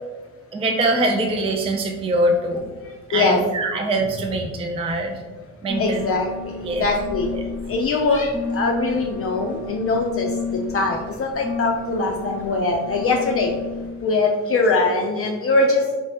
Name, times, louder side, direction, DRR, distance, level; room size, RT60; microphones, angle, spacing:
voice 1, 0.5-2.7 3.1-5.2 5.6-6.0 6.6-6.9 7.3-7.4, right 2 dB, 20° right, 3 dB, 0.3 m, -23 dB
sound 1, 5.7-13.9, left 4 dB, 5° right, 1.0 m, -32 dB
voice 2, 5.8-6.5 6.8-7.3 7.7-10.3 10.7-13.5 14.0-15.8, left 3 dB, 45° left, 1 dB, 0.5 m, -21 dB
4.4 x 2.7 x 3.3 m, 1.3 s
cardioid pair, 135°, 31 cm